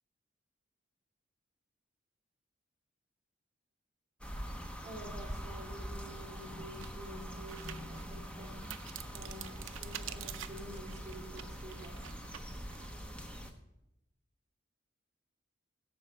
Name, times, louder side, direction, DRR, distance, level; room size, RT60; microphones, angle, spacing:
sound 1, 4.2-13.5, equal, 5° left, 0.9 m, -44 dB
voice 1, 4.8-8.6 9.1-11.9, right 1 dB, 35° right, -3 dB, 2.9 m, -49 dB
sound 2, 6.3-12.9, right 10 dB, 75° right, 0.6 m, -48 dB
11.5 x 7.5 x 4.4 m, 0.88 s
head